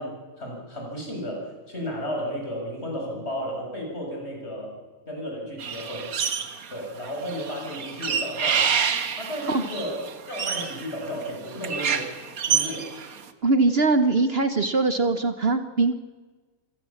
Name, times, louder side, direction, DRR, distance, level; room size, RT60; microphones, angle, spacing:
voice 1, 0.0-4.7 5.0-6.1 6.7-8.9 9.2-10.0 10.3-12.2 12.5-12.9, equal, 50° left, 0 dB, 6.7 m, -33 dB
sound 1, 5.6-6.7 7.0-13.2, right 7 dB, 90° right, 1.7 m, -28 dB
voice 2, 13.4-15.9, right 3 dB, 50° right, 9 dB, 1.2 m, -21 dB
27.5 x 16.5 x 7.2 m, 1.4 s
omnidirectional pair, 1.5 m